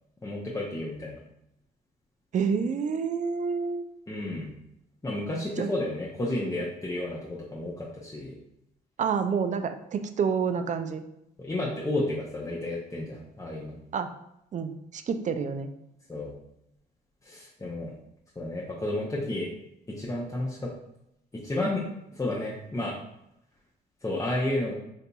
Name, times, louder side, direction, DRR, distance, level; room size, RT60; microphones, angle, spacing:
voice 1, 0.2-1.2 4.1-4.5 5.0-8.3 11.4-13.7 16.1-16.3 17.2-17.9 18.4-19.5 19.9-20.7 21.4-21.8 22.1-23.0 24.0-24.7, left 1 dB, 15° left, -4 dB, 0.6 m, -31 dB
voice 2, 2.3-3.8 5.6-5.7 9.0-11.0 13.9-14.1 14.5-15.7, right 6 dB, 40° right, 8 dB, 0.4 m, -28 dB
3.9 x 2.7 x 2.3 m, 0.80 s
supercardioid pair, 65°, 20 cm